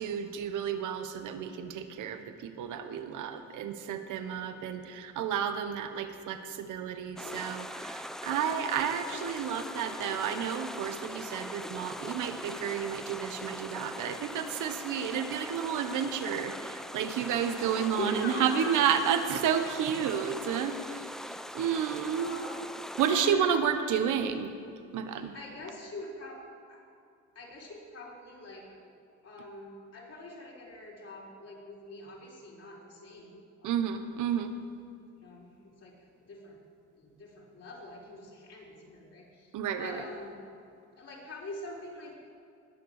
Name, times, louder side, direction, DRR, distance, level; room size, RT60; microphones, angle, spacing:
voice 1, 0.0-21.0 21.5-22.4 23.0-24.6 24.9-25.3 33.6-34.5 39.5-40.0, right 8 dB, 85° right, 9 dB, 1.1 m, -31 dB
voice 2, 4.2-4.8 17.9-19.1 22.2-23.9 25.1-26.4 26.7-26.9 27.3-28.7 29.2-33.8 34.1-34.3 35.2-35.9 36.2-36.6 36.9-40.4 41.0-42.2, left 2 dB, 55° left, -4 dB, 4.1 m, -44 dB
sound 1, 7.2-23.3, equal, ahead, 0.5 m, -41 dB
20.0 x 7.0 x 6.6 m, 2.4 s
cardioid pair, 90°, 30 cm